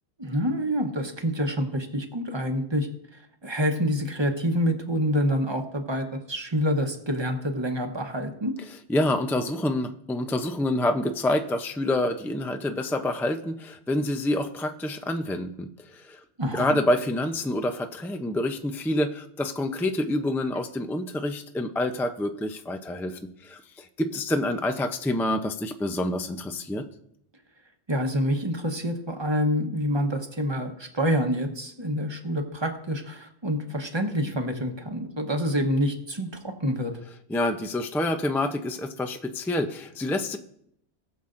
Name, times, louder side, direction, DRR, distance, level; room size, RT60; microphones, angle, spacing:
voice 1, 0.2-8.5 16.4-16.8 27.9-36.9, equal, 25° right, 4 dB, 1.0 m, -27 dB
voice 2, 8.6-16.2 16.5-26.8 37.3-40.4, left 1 dB, 5° left, 7 dB, 0.3 m, -27 dB
19.5 x 7.2 x 2.6 m, 0.71 s
omnidirectional pair, 1.2 m